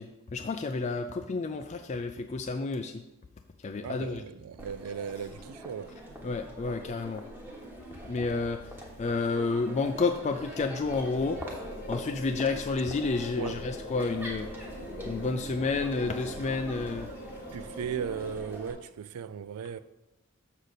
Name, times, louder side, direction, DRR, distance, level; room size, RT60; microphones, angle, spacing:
voice 1, 0.0-3.0 3.6-4.2 6.2-7.2 8.0-8.7 9.0-11.4 11.9-14.5 15.0-17.1, left 3 dB, 30° left, 0.3 m, -30 dB
voice 2, 3.8-6.0 13.4-13.6 17.5-19.8, right 7 dB, 80° right, 0.4 m, -37 dB
Crowd, 4.6-18.7, equal, 10° right, 1.1 m, -43 dB
Accelerating revving vroom, 7.4-17.0, left 1 dB, 60° left, 0.7 m, -53 dB
sound 1, 10.8-18.3, equal, 85° left, 1.3 m, -44 dB
6.5 x 6.5 x 4.0 m
head